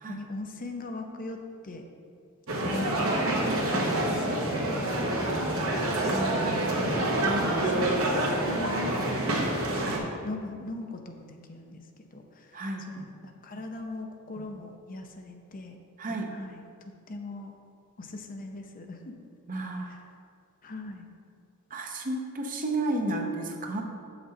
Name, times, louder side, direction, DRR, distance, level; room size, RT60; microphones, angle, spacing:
voice 1, 0.1-1.4 1.6-1.8 2.6-5.6 6.1-6.9 7.2-8.9 9.2-11.8 12.1-15.8 16.3-16.6 17.1-17.5 18.0-19.1 19.8-20.0 20.6-21.1, left 2 dB, 40° left, 4 dB, 0.6 m, -40 dB
sound 1, 2.5-10.0, right 1 dB, 70° right, 1.2 m, -27 dB
voice 2, 12.5-13.1 16.0-16.3 19.5-19.9 21.7-23.8, right 2 dB, 40° right, 2 dB, 0.8 m, -32 dB
7.6 x 6.0 x 4.1 m, 2.3 s
head